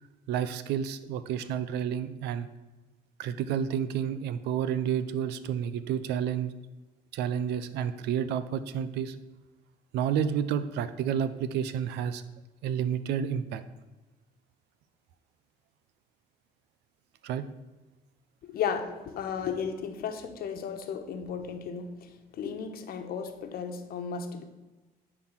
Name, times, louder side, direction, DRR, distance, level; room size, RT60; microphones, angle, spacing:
voice 1, 0.3-2.5 3.2-6.5 7.1-9.1 9.9-12.2 12.6-13.6 17.2-17.5, right 8 dB, 80° right, 13 dB, 0.7 m, -30 dB
voice 2, 18.4-24.4, left 7 dB, 65° left, 6 dB, 1.2 m, -34 dB
10.0 x 4.4 x 7.2 m, 1.1 s
cardioid pair, 110°, 17 cm